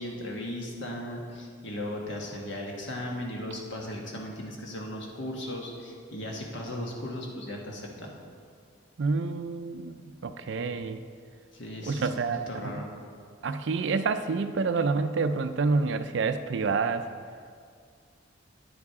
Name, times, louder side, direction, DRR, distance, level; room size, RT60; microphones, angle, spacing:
voice 1, 0.0-8.1 11.5-12.2 12.5-12.9, left 1 dB, 65° left, 0 dB, 1.4 m, -37 dB
voice 2, 9.0-11.0 11.9-12.7 13.4-17.1, right 4 dB, 65° right, 10 dB, 0.4 m, -28 dB
9.5 x 7.2 x 4.7 m, 2.1 s
head